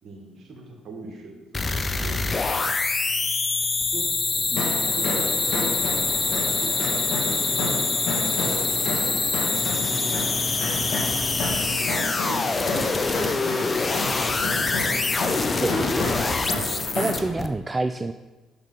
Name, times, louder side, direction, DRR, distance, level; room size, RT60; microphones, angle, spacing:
voice 1, 0.0-2.6 3.9-5.7 6.6-6.8 7.1-8.0 8.3-9.3 9.7-11.1 11.6-12.0 12.3-13.4 13.8-15.1, right 3 dB, 55° right, 2 dB, 1.6 m, -41 dB
sound 1, 1.5-17.5, left 3 dB, 35° left, 0.6 m, -25 dB
sound 2, 4.5-17.3, left 2 dB, 70° left, 1.7 m, -31 dB
voice 2, 15.6-16.2 16.9-18.1, right 2 dB, 20° right, 9 dB, 0.3 m, -27 dB
6.0 x 5.3 x 5.5 m, 1.2 s
supercardioid pair, 60°, 0 cm